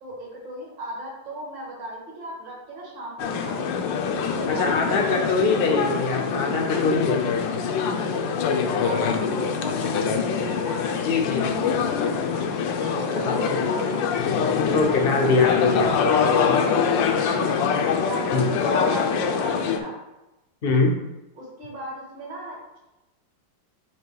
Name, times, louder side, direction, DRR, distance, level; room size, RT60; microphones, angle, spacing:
voice 1, 0.0-3.8 4.3-5.7 8.8-14.1 17.2-17.6 18.0-20.0 21.3-22.6, equal, 75° right, -4 dB, 2.6 m, -36 dB
sound 1, 3.2-19.8, left 6 dB, 85° left, 1.3 m, -24 dB
voice 2, 4.5-7.3 11.0-11.5 13.1-13.6 14.7-16.6 18.3-18.5 20.6-20.9, left 3 dB, 65° left, 2 dB, 0.5 m, -23 dB
7.4 x 2.9 x 4.6 m, 0.97 s
omnidirectional pair, 2.0 m